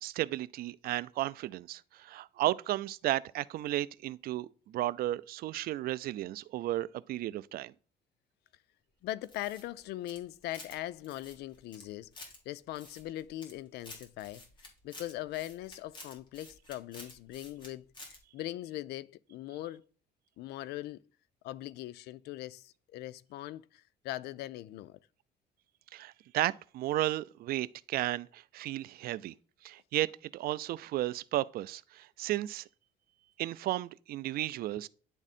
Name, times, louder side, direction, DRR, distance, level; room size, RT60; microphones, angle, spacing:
voice 1, 0.0-7.7 25.9-29.3 29.6-32.6 33.4-34.9, right 15 dB, 65° right, 0.4 m, -34 dB
voice 2, 9.0-14.4 14.8-19.8 20.4-21.0 21.4-25.0, left 15 dB, 75° left, 0.4 m, -41 dB
sound 1, 9.2-10.8 11.0-12.4 12.7-13.5 13.8-17.7 17.9-18.2, left 2 dB, 30° left, 2.3 m, -50 dB
9.9 x 3.6 x 4.2 m
cardioid pair, 110°, 17 cm